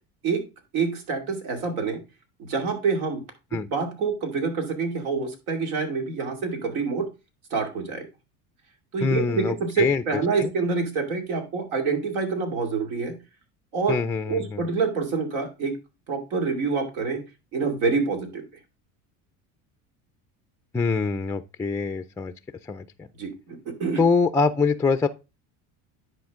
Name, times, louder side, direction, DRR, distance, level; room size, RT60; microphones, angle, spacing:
voice 1, 0.7-2.0 2.4-3.2 3.7-7.1 7.5-8.0 8.9-13.2 13.7-13.9 14.3-15.7 16.1-17.2 17.5-18.4 23.2-24.0, right 4 dB, 85° right, 2.5 m, -26 dB
voice 2, 9.0-10.0 10.4-10.5 13.9-14.6 20.7-22.3 22.7-23.1 24.0-25.1, left 4 dB, 10° left, 0.3 m, -24 dB
10.5 x 4.5 x 3.6 m
supercardioid pair, 95°, 43 cm